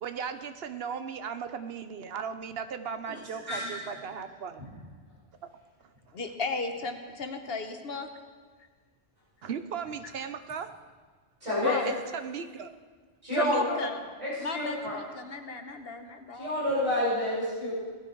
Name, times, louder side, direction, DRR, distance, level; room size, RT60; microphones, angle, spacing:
voice 1, 0.0-4.6 9.4-10.7 11.9-12.7, right 6 dB, 65° right, 9 dB, 0.9 m, -37 dB
voice 2, 3.5-3.8 11.4-11.9 13.2-13.8 14.2-15.0 16.3-17.7, left 1 dB, 30° right, -8 dB, 5.9 m, -29 dB
voice 3, 6.1-8.1 11.6-11.9 13.3-14.0 14.4-16.5, left 4 dB, 60° left, 6 dB, 1.3 m, -35 dB
17.5 x 12.0 x 4.6 m, 1.5 s
omnidirectional pair, 1.1 m